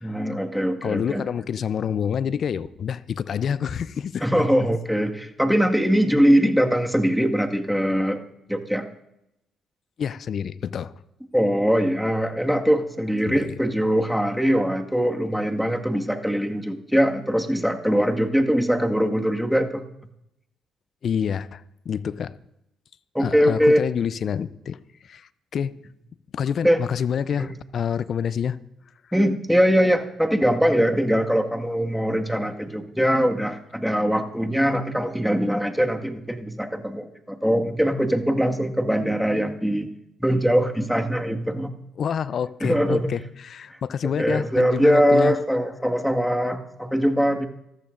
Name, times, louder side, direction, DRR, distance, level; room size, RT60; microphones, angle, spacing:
voice 1, 0.0-1.2 4.2-8.2 8.5-8.9 11.3-19.8 23.1-23.8 26.6-26.8 27.4-27.5 29.1-39.9 40.2-41.7 42.6-43.1 44.0-47.5, equal, ahead, 1.8 m, -22 dB
voice 2, 0.8-4.3 10.0-10.9 13.3-13.5 21.0-22.3 23.2-24.8 25.0-25.7 26.3-28.6 42.0-45.3, left 7 dB, 55° left, 0.6 m, -27 dB
26.5 x 14.0 x 2.6 m
hypercardioid pair, 45°, 0 cm